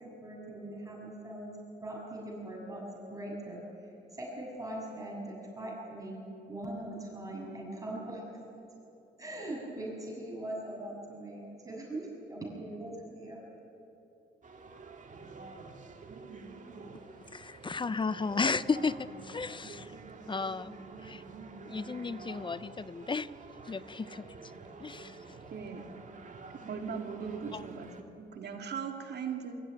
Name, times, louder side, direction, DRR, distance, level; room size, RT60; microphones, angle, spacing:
voice 1, 0.0-1.5 1.8-2.8 3.1-6.2 6.5-8.3 9.2-13.4, right 1 dB, 15° right, -2 dB, 7.3 m, -41 dB
sound 1, 14.4-28.0, right 4 dB, 40° right, 2.2 m, -48 dB
voice 2, 17.3-19.9 20.3-21.2 21.7-23.3 23.7-24.3 24.8-25.2 27.5-27.6, left 4 dB, 25° left, 16 dB, 0.6 m, -34 dB
voice 3, 25.5-25.8 26.7-29.6, right 6 dB, 55° right, 3 dB, 2.3 m, -39 dB
23.0 x 14.5 x 9.9 m, 2.9 s
cardioid pair, 90°, 20 cm